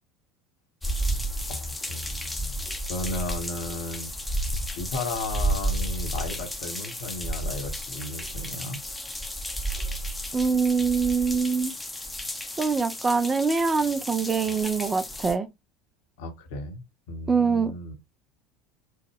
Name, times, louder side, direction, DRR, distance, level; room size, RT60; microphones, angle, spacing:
sound 1, 0.8-15.4, right 1 dB, 10° left, 0.7 m, -32 dB
voice 1, 1.5-2.6 2.9-4.1 4.8-8.8 16.2-17.9, left 2 dB, 60° left, 1.0 m, -35 dB
voice 2, 10.3-11.7 12.6-15.5 17.3-17.7, right 5 dB, 20° right, 0.4 m, -24 dB
4.5 x 2.2 x 3.2 m
figure-of-eight pair, 70°, 0 cm